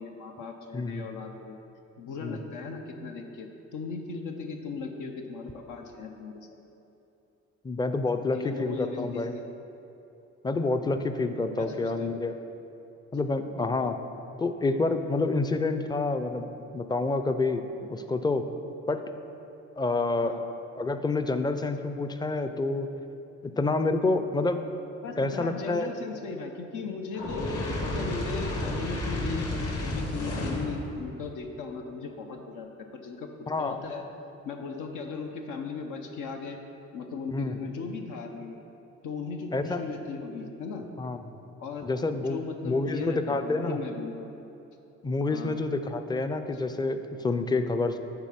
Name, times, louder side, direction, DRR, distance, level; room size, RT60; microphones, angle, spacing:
voice 1, 0.0-1.6 2.0-6.5 8.3-9.4 11.6-12.1 20.2-20.4 25.0-27.5 27.8-33.3 33.6-34.0 34.4-36.6 36.9-38.6 39.0-40.8 41.6-41.9 42.1-44.3 45.3-45.5, left 4 dB, 85° left, 3 dB, 0.8 m, -37 dB
voice 2, 0.7-1.1 2.2-2.4 7.6-9.4 10.4-12.4 13.1-14.0 14.4-18.5 18.9-19.0 19.8-20.4 20.8-22.9 23.4-24.6 25.2-25.9 33.5-33.8 37.3-37.6 39.5-39.8 41.0-41.4 41.8-43.8 45.0-48.0, left 3 dB, 15° left, 9 dB, 0.4 m, -28 dB
Fire, 27.1-30.8, left 1 dB, 50° left, 1.3 m, -31 dB
9.6 x 4.0 x 5.7 m, 2.9 s
cardioid pair, 90°, 30 cm